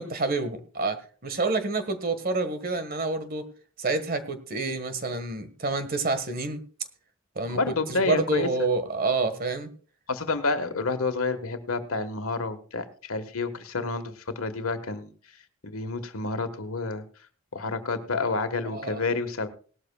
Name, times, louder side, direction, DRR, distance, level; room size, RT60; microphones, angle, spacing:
voice 1, 0.0-3.5 3.8-6.6 7.3-9.7 18.6-19.0, right 3 dB, 45° right, 1.6 m, -28 dB
voice 2, 7.5-8.5 10.1-15.1 15.6-17.0 17.5-19.5, left 3 dB, 80° left, 1.6 m, -29 dB
18.5 x 13.0 x 2.4 m
head